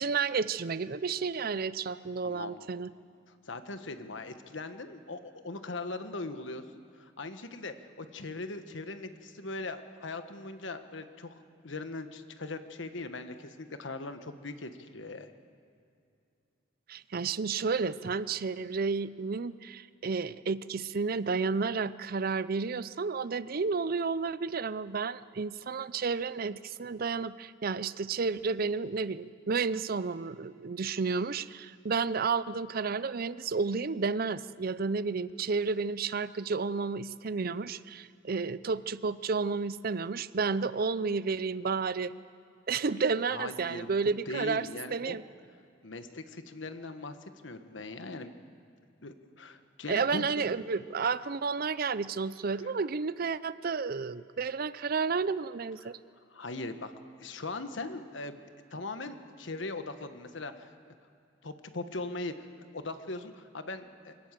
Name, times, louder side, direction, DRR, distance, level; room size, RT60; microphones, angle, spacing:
voice 1, 0.0-2.9 16.9-42.1 42.7-45.2 49.9-56.0, right 4 dB, 50° right, 16 dB, 0.5 m, -31 dB
voice 2, 2.2-2.6 3.4-6.6 6.9-15.3 43.3-43.9 44.3-45.2 45.8-48.3 49.0-50.5 52.6-52.7 56.3-56.9 57.2-60.9 61.4-64.1, left 2 dB, 70° left, 9 dB, 1.3 m, -40 dB
24.5 x 18.0 x 7.6 m, 2.5 s
head